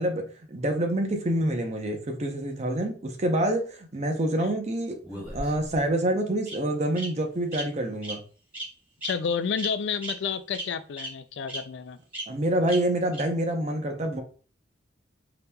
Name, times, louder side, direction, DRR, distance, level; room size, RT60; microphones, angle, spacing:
voice 1, 0.0-8.2 12.3-14.2, right 1 dB, 40° right, 0.7 m, -27 dB
Bird vocalization bird call bird song, 5.0-5.8 6.5-6.6 7.0-7.1 7.5-7.6 8.0-8.2 8.5-8.7 9.0-9.1 9.6-9.7 10.0-10.1 10.5-10.6 11.0-11.1 11.5-11.6 12.1-12.2 12.7-12.8 13.1-13.2, right 1 dB, 10° right, 1.7 m, -35 dB
voice 2, 9.0-12.0, left 6 dB, 75° left, 0.3 m, -30 dB
5.1 x 2.9 x 2.3 m
head